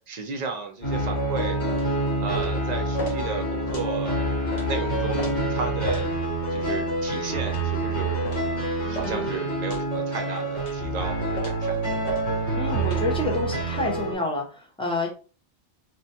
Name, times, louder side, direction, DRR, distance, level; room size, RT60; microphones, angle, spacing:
voice 1, 0.1-1.6 1.8-4.3 4.6-6.1 6.5-8.3 8.7-12.0, right 5 dB, 50° right, 3 dB, 0.6 m, -34 dB
sound 1, 0.8-14.1, right 1 dB, 80° left, 1.6 m, -27 dB
sound 2, 1.7-1.9 2.3-2.6 3.0-3.2 3.7-3.9 4.5-4.7 5.2-5.3 5.9-6.1 6.6-6.7 7.4-7.7 8.2-8.5 8.9-9.1 9.7-9.9 10.6-10.8 11.3-11.6 12.0-12.2 12.8-13.0, left 1 dB, 45° left, 0.8 m, -36 dB
voice 2, 12.5-15.1, left 2 dB, 10° left, 0 dB, 0.4 m, -28 dB
3.0 x 2.1 x 2.7 m, 0.38 s
omnidirectional pair, 1.1 m